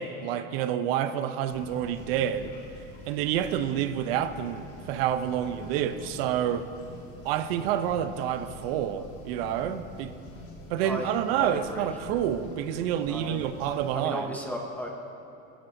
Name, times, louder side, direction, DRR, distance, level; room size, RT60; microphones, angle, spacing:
voice 1, 0.0-2.5 3.1-6.7 7.2-10.1 10.7-14.3, right 10 dB, 65° right, 11 dB, 0.7 m, -28 dB
sound 1, 1.5-13.9, left 2 dB, 45° left, 1.8 m, -46 dB
voice 2, 10.8-11.9 13.1-13.5 13.9-15.1, equal, 5° left, 0 dB, 0.5 m, -35 dB
27.5 x 10.5 x 2.7 m, 3.0 s
cardioid pair, 180°, 32 cm